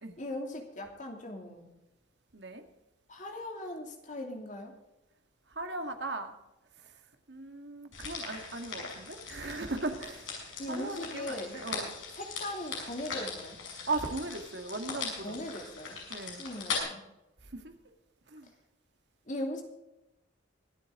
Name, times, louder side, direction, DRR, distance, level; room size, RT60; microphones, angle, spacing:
voice 1, 0.2-1.7 3.1-4.7 10.6-11.6 12.1-13.6 15.2-16.0 16.4-17.0 19.3-19.6, left 1 dB, 40° left, 3 dB, 2.7 m, -39 dB
voice 2, 2.3-2.6 5.5-6.3 7.3-10.3 10.7-11.9 13.9-15.4 16.1-16.4 17.5-17.7 18.3-18.5, right 2 dB, 65° right, 6 dB, 1.9 m, -37 dB
sound 1, 7.9-16.8, left 4 dB, 85° left, 6.2 m, -40 dB
24.0 x 8.3 x 3.8 m, 0.94 s
head